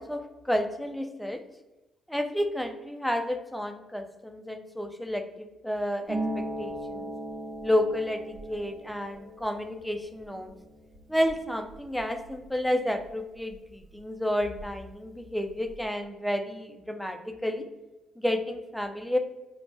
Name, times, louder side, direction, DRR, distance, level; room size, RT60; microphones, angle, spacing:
voice 1, 0.0-1.4 2.1-5.2 5.6-7.1 7.6-8.2 8.5-10.5 11.1-17.6 18.2-19.2, equal, 5° left, 6 dB, 0.3 m, -30 dB
Harp, 6.1-13.5 13.8-14.9 15.2-15.8, right 1 dB, 25° right, 0.9 m, -39 dB
3.0 x 2.1 x 3.1 m, 1.1 s
cardioid pair, 90°, 0 cm